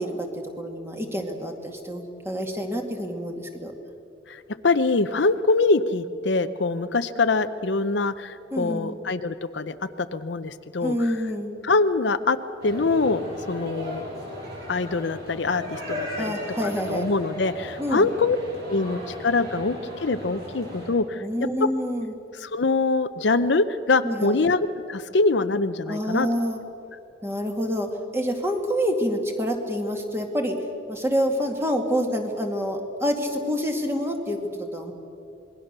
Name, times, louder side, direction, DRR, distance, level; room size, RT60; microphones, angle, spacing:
voice 1, 0.0-3.7 8.5-8.9 10.8-11.6 16.2-17.0 17.8-18.1 21.2-22.1 24.0-24.4 25.9-26.6 27.2-27.9 28.1-30.6 30.9-34.9, equal, 15° right, 3 dB, 2.1 m, -27 dB
voice 2, 4.3-11.2 11.6-12.4 12.6-14.0 14.7-16.3 16.6-18.4 18.7-21.2 22.3-26.3, left 3 dB, 60° left, 11 dB, 0.7 m, -24 dB
sound 1, 12.6-20.9, left 1 dB, 55° right, 7.9 m, -36 dB
26.5 x 21.0 x 6.7 m, 2.7 s
head